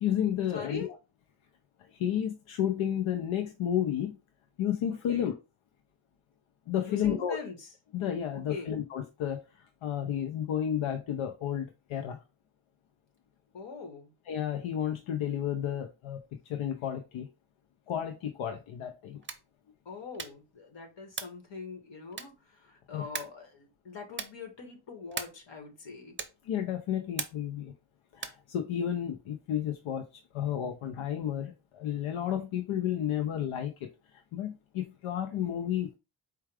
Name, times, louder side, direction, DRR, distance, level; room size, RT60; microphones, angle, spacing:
voice 1, 0.0-0.9 2.0-4.2 4.6-5.4 6.7-7.4 7.9-9.4 9.8-12.2 14.3-17.3 17.9-19.2 22.9-23.0 26.4-27.7 28.1-33.9 34.3-36.0, left 10 dB, 85° left, 0.7 m, -32 dB
voice 2, 0.5-0.9 5.1-5.3 6.9-7.7 8.5-8.7 13.5-14.1 19.8-26.2, left 4 dB, 65° left, 1.6 m, -43 dB
sound 1, 19.2-19.6 20.1-20.5 21.1-21.5 22.1-22.5 23.1-23.5 24.1-24.5 25.1-25.5 26.1-26.5 27.2-27.6 28.1-28.5, right 5 dB, 25° right, 0.6 m, -39 dB
4.6 x 2.3 x 4.7 m
wide cardioid pair, 140°, 47 cm